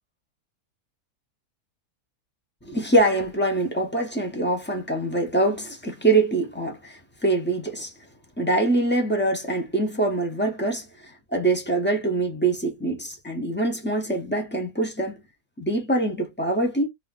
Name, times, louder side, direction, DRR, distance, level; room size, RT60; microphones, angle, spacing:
voice 1, 2.6-7.9 8.4-15.2 15.6-16.9, right 2 dB, 15° left, 0.3 m, -24 dB
2.7 x 2.5 x 3.7 m
omnidirectional pair, 1.6 m